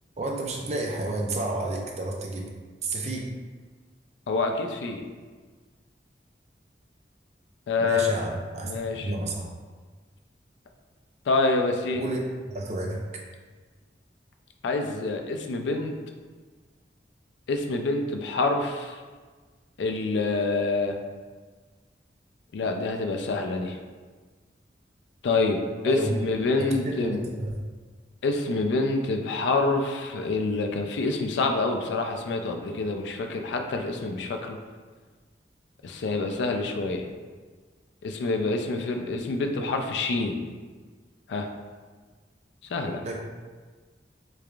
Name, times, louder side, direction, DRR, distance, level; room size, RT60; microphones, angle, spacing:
voice 1, 0.2-2.5 2.8-3.3 7.8-8.7 9.0-9.5 11.9-12.2 12.5-13.0 25.8-26.1 26.6-27.6 43.0-43.2, right 2 dB, 40° right, 0 dB, 0.4 m, -31 dB
voice 2, 4.3-5.0 7.7-8.1 8.6-9.1 11.3-12.1 14.6-15.9 17.5-19.0 19.8-21.0 22.5-23.8 25.2-27.2 28.2-34.6 35.8-37.0 38.0-40.4 41.3-41.5 42.7-43.0, left 3 dB, 85° left, 4 dB, 0.4 m, -27 dB
3.3 x 3.3 x 2.4 m, 1.4 s
head